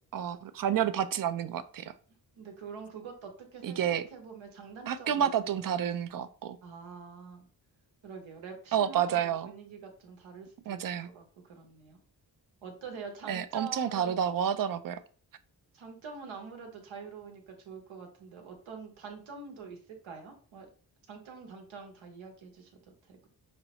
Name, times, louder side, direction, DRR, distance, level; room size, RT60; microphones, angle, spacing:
voice 1, 0.1-1.9 3.6-4.0 4.9-6.6 8.7-9.5 10.7-11.1 13.3-15.0, right 9 dB, 50° right, 13 dB, 0.4 m, -30 dB
voice 2, 2.4-5.3 5.6-5.8 6.6-7.5 8.0-12.0 12.6-14.2 15.7-20.7 21.1-23.3, right 5 dB, 85° right, 3 dB, 0.9 m, -45 dB
5.0 x 2.0 x 2.9 m, 0.43 s
cardioid pair, 45°, 46 cm